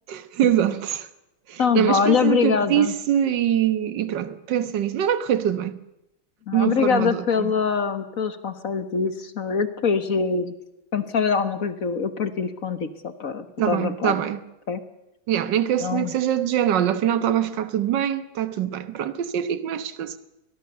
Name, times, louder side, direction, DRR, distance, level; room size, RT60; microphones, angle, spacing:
voice 1, 0.1-1.1 1.5-5.8 6.5-7.5 13.6-14.4 15.3-20.2, right 10 dB, 60° right, 1.8 m, -23 dB
voice 2, 1.6-2.9 6.5-10.5 10.9-14.1 14.7-14.8 15.8-16.1, left 6 dB, 45° left, 1.5 m, -24 dB
23.5 x 18.0 x 6.9 m
omnidirectional pair, 2.2 m